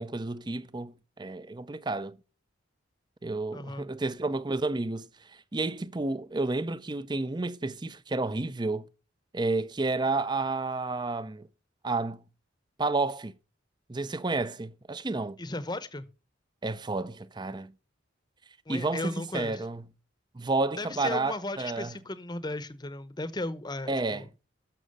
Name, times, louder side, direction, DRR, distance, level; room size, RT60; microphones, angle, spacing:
voice 1, 0.0-2.2 3.2-8.9 9.3-11.5 11.8-12.2 12.8-13.3 13.9-15.4 16.6-17.7 18.7-19.8 20.3-21.9 23.9-24.2, right 3 dB, 20° right, 0.6 m, -31 dB
voice 2, 3.5-3.9 15.4-16.1 18.7-19.6 20.8-24.3, left 2 dB, 20° left, 0.9 m, -36 dB
13.0 x 6.1 x 5.4 m
head